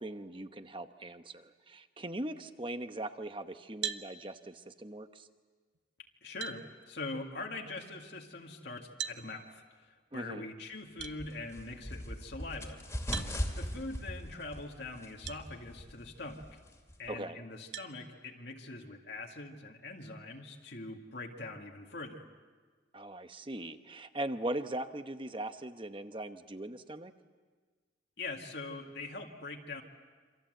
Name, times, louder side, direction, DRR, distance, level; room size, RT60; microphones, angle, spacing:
voice 1, 0.0-5.3 10.1-10.5 17.1-17.4 22.9-27.1, right 1 dB, 25° right, 9 dB, 1.0 m, -40 dB
sound 1, 3.8-4.1 5.7-5.8 6.4-6.6 9.0-9.2 11.0-11.2 13.1-13.3 15.2-15.4 16.0-16.1 17.7-17.9, right 9 dB, 65° right, 1.0 m, -38 dB
voice 2, 6.0-13.3 13.6-16.6 17.0-22.3 28.2-29.8, left 3 dB, 60° left, 1 dB, 2.0 m, -43 dB
sound 2, 11.0-17.1, equal, 15° left, 2.4 m, -40 dB
27.5 x 26.0 x 7.9 m, 1.5 s
head